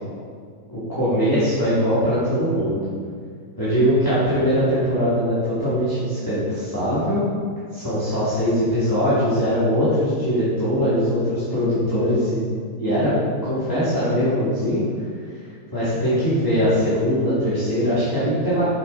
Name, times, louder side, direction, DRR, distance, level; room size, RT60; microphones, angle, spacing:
voice 1, 0.7-2.9 3.6-7.2 7.7-12.4 12.8-14.8 15.7-18.7, equal, 10° left, -12 dB, 2.5 m, -21 dB
9.7 x 7.7 x 4.1 m, 2.1 s
omnidirectional pair, 2.0 m